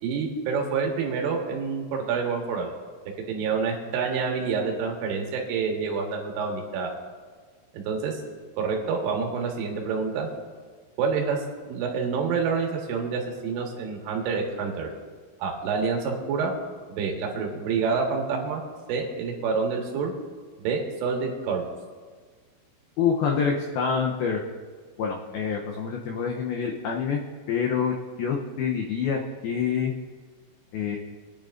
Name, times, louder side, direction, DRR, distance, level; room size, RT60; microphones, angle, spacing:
voice 1, 0.0-2.7 3.3-6.9 7.7-8.2 8.6-10.3 11.0-11.4 11.6-14.9 15.4-16.6 16.9-18.6 18.9-20.1 20.6-21.6, right 5 dB, 80° right, 1 dB, 4.0 m, -27 dB
voice 2, 23.0-24.4 25.0-27.2 27.5-29.9 30.7-31.0, left 6 dB, 90° left, 0 dB, 2.1 m, -26 dB
23.0 x 10.5 x 2.6 m, 1.5 s
omnidirectional pair, 5.6 m